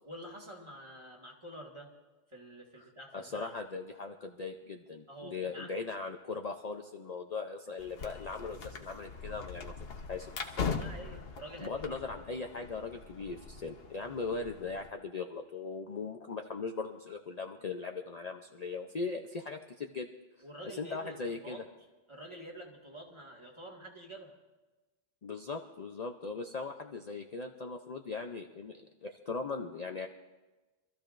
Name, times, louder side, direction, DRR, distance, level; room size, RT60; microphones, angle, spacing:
voice 1, 0.1-1.9 2.3-3.6 5.1-5.8 10.5-12.0 14.0-14.3 20.4-21.6 22.1-24.3, right 1 dB, 25° right, -2 dB, 2.0 m, -48 dB
voice 2, 3.1-9.7 10.1-10.7 11.6-20.1 20.6-21.6 25.2-30.1, left 4 dB, 45° left, 4 dB, 0.7 m, -39 dB
sound 1, 7.8-14.9, left 5 dB, 60° left, 1.1 m, -41 dB
25.5 x 14.0 x 2.6 m, 1.2 s
omnidirectional pair, 1.2 m